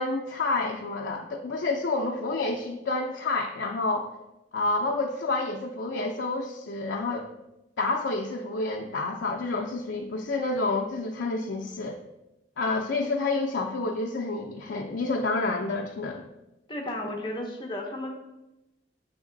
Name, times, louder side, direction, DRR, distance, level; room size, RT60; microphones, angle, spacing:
voice 1, 0.0-4.1 4.5-7.3 7.8-12.0 12.6-16.2, left 3 dB, 85° left, 0 dB, 0.5 m, -29 dB
voice 2, 16.7-18.1, left 1 dB, 25° left, 1 dB, 0.8 m, -33 dB
7.1 x 3.5 x 3.8 m, 0.95 s
head